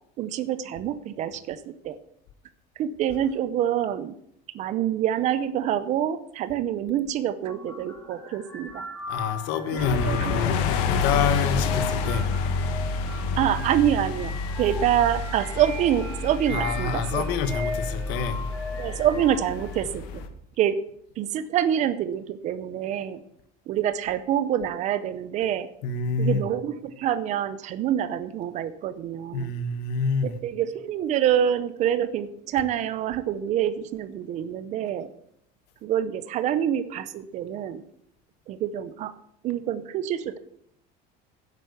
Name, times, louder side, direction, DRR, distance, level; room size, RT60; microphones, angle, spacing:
voice 1, 0.2-2.0 2.8-4.2 4.5-8.9 9.7-10.6 13.4-17.2 18.8-20.2 20.6-20.8 21.2-23.2 23.7-25.7 26.2-29.5 30.2-35.1 35.8-37.8 38.5-39.1 39.4-40.4, right 10 dB, 35° right, 0.6 m, -26 dB
sound 1, 7.4-19.8, left 2 dB, 10° left, 2.7 m, -38 dB
voice 2, 9.1-12.3 16.5-18.4 25.8-26.4 29.3-30.4, left 5 dB, 60° left, 1.3 m, -27 dB
sound 2, 9.8-20.3, left 4 dB, 90° left, 1.5 m, -29 dB
10.0 x 8.2 x 6.9 m
cardioid pair, 175°, 20 cm